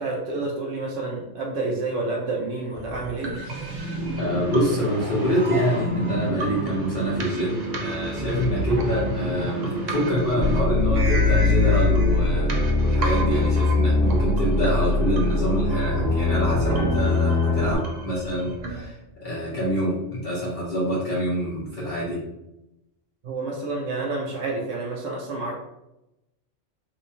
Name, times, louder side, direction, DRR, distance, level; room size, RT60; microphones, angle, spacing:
voice 1, 0.0-3.4 23.2-25.5, right 3 dB, 70° right, -2 dB, 0.9 m, -29 dB
sound 1, 2.7-18.9, right 2 dB, 50° right, 0.5 m, -34 dB
sound 2, 2.8-10.6, equal, 35° right, 1.5 m, -31 dB
voice 2, 4.1-22.2, equal, 45° left, -7 dB, 0.9 m, -26 dB
sound 3, 10.4-17.7, left 2 dB, 80° left, 1.0 m, -21 dB
3.3 x 3.0 x 2.7 m, 0.89 s
omnidirectional pair, 1.3 m